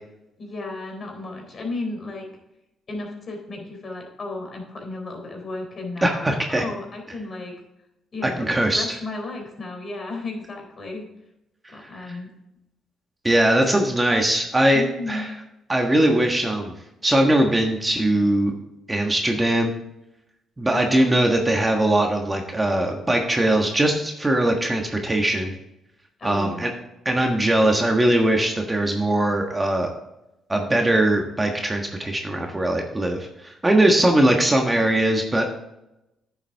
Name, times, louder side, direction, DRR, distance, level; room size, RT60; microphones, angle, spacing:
voice 1, 0.4-2.3 2.9-7.5 8.1-11.1 11.7-12.3 13.5-13.6 14.7-15.3 20.7-21.1 26.2-26.7, left 2 dB, 40° left, 2 dB, 3.6 m, -34 dB
voice 2, 6.0-6.6 8.2-8.8 12.0-12.1 13.2-15.3 15.7-16.7 17.0-18.5 18.9-19.7 20.6-25.5 26.2-26.7 27.0-29.9 30.5-35.5, right 1 dB, 15° right, 2 dB, 1.4 m, -21 dB
10.0 x 7.4 x 3.5 m, 0.89 s
cardioid pair, 90°, 0 cm